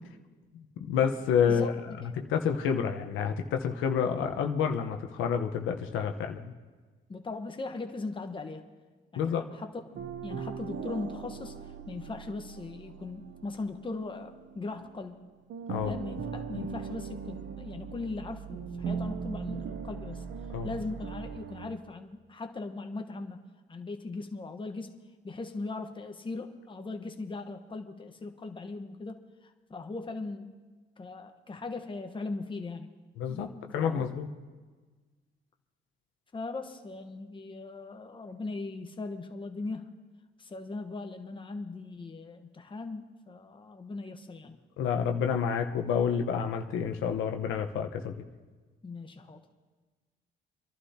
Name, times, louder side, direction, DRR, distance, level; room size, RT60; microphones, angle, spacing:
voice 1, 0.8-1.7 2.3-6.5 9.2-9.4 15.7-15.9 20.5-20.7 33.2-34.3 44.8-48.1, left 7 dB, 90° left, 4 dB, 1.0 m, -29 dB
voice 2, 1.5-2.1 7.1-8.7 9.1-9.8 10.2-11.6 11.9-15.2 15.8-20.2 20.6-23.4 23.7-25.0 25.2-30.6 31.0-32.9 33.3-34.1 36.3-39.9 40.4-44.6 48.8-49.4, left 3 dB, 25° left, 5 dB, 1.1 m, -39 dB
sound 1, 9.9-15.2 15.5-21.8, right 6 dB, 65° right, 0.8 m, -39 dB
28.5 x 11.5 x 2.9 m, 1.4 s
cardioid pair, 90°, 20 cm